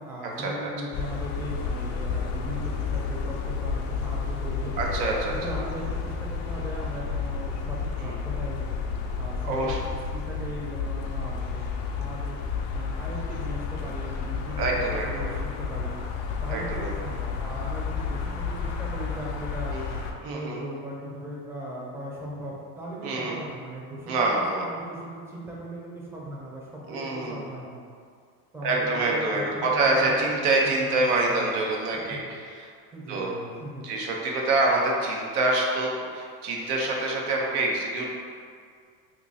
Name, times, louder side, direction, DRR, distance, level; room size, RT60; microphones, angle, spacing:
voice 1, 0.0-4.7 5.3-8.8 9.2-11.7 12.0-12.4 12.7-15.9 16.4-19.7 20.2-27.8 28.5-29.9 30.2-31.5 31.9-32.2 32.9-33.9, right 1 dB, 5° right, -5 dB, 0.7 m, -38 dB
sound 1, 0.9-20.1, left 5 dB, 60° left, 0.6 m, -31 dB
voice 2, 4.8-5.3 8.0-8.2 9.4-9.8 14.6-15.3 16.5-16.9 19.7-20.6 23.0-23.4 24.1-24.7 26.9-27.5 28.6-32.7 33.1-33.3 33.8-38.1, right 2 dB, 75° right, -2 dB, 0.8 m, -26 dB
2.8 x 2.7 x 4.0 m, 2.1 s
supercardioid pair, 95°, 46 cm